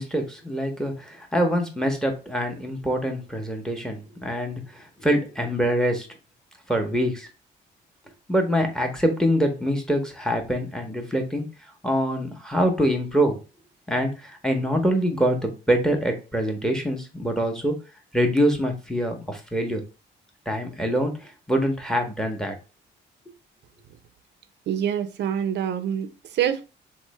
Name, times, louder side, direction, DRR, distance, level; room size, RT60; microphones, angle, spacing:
voice 1, 0.0-6.1 6.7-7.3 8.3-11.4 11.8-13.4 13.9-17.8 18.1-19.8 20.5-22.6, equal, 5° left, 0.7 m, -24 dB
voice 2, 24.7-26.7, right 9 dB, 60° right, 0.4 m, -26 dB
3.1 x 2.0 x 3.0 m
cardioid pair, 90°, 20 cm